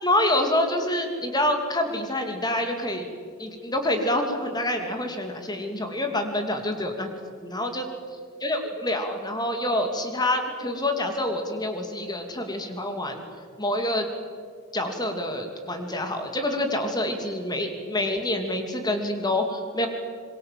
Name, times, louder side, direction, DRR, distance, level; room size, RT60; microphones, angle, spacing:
voice 1, 0.0-3.1 3.4-7.1 7.4-7.9 8.4-13.2 13.6-14.0 14.7-19.9, left 1 dB, 20° left, 5 dB, 2.8 m, -27 dB
26.0 x 22.5 x 7.7 m, 2.1 s
head